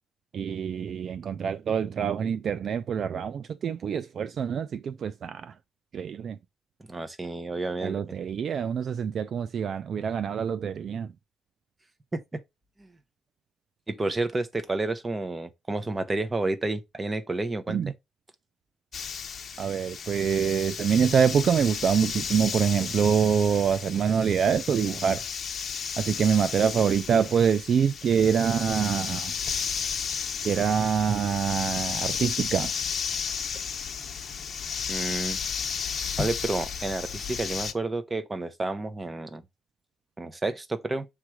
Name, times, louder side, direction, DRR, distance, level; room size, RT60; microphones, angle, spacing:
voice 1, 0.3-5.5 5.9-6.4 7.8-11.1 17.7-17.9 19.6-25.2 26.0-29.3 30.4-32.7, right 7 dB, 55° right, 0.4 m, -25 dB
voice 2, 6.9-8.0 12.1-12.4 12.8-12.9 13.9-17.8 34.9-35.4 36.2-39.4 40.2-41.1, right 2 dB, 20° right, 1.0 m, -30 dB
sound 1, 18.9-37.7, left 6 dB, 50° left, 1.0 m, -33 dB
7.1 x 3.2 x 4.9 m
cardioid pair, 90°, 0 cm